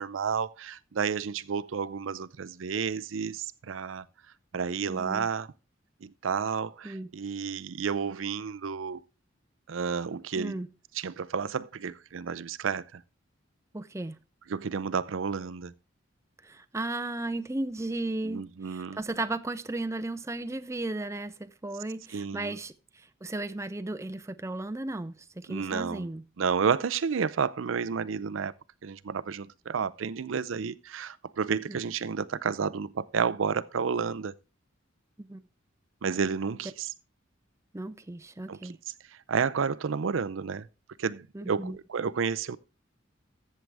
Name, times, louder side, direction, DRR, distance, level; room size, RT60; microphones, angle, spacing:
voice 1, 0.0-4.0 4.5-5.5 6.0-9.0 9.7-10.6 10.9-13.0 14.5-15.7 18.2-19.0 22.1-22.6 25.5-26.1 26.4-28.5 28.8-34.3 36.0-36.9 38.5-38.7 39.1-40.7 41.0-42.6, right 6 dB, 85° right, 0.5 m, -31 dB
voice 2, 4.8-5.3 6.8-7.1 10.4-10.7 13.7-14.2 16.4-26.2 31.7-31.8 35.2-35.4 37.7-38.8 41.3-41.8, right 2 dB, 15° right, 0.5 m, -35 dB
14.0 x 7.6 x 3.4 m
head